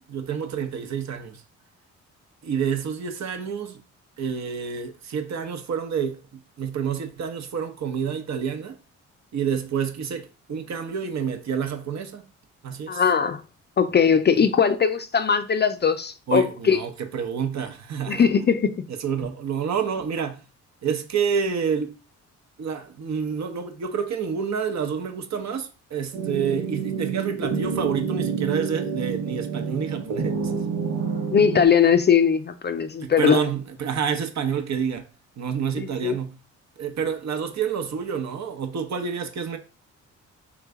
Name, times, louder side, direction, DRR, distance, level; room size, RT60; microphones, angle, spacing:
voice 1, 0.0-1.4 2.4-3.8 4.2-8.8 9.3-12.3 12.6-13.0 14.4-14.5 16.3-18.3 18.9-20.4 20.8-21.9 22.6-30.6 33.0-35.1 35.4-36.4 36.8-39.6, right 7 dB, 55° right, 0.9 m, -28 dB
voice 2, 12.9-13.4 13.8-16.8 18.1-18.8 31.3-33.4 35.8-36.2, left 7 dB, 30° left, 0.5 m, -20 dB
sound 1, 26.1-31.7, right 5 dB, 80° right, 1.2 m, -28 dB
3.4 x 3.1 x 3.6 m
supercardioid pair, 60°, 33 cm